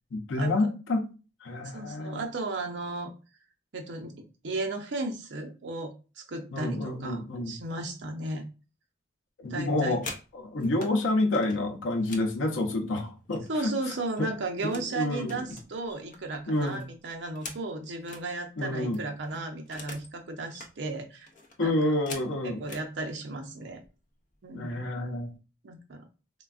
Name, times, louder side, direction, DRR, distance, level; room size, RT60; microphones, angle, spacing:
voice 1, 0.1-1.0 1.4-2.2 6.5-7.5 9.4-10.0 10.3-13.7 14.2-14.3 14.6-15.4 16.5-16.8 18.6-19.0 21.6-22.6 24.5-25.3, left 2 dB, 90° left, 0.6 m, -28 dB
voice 2, 1.7-3.1 3.7-8.4 9.5-10.0 10.6-10.7 13.5-21.3 21.6-21.9 22.4-23.8 24.4-24.8 25.6-26.1, right 2 dB, 70° right, 0.6 m, -35 dB
sound 1, 9.7-10.9 11.3-13.7 14.0-14.9 15.2-18.3 18.6-18.7 18.9-20.1 20.4-20.7 21.3-22.9 23.7-23.9 24.2-24.6 24.9-25.4, left 3 dB, 40° left, 0.4 m, -45 dB
3.4 x 2.2 x 2.3 m
head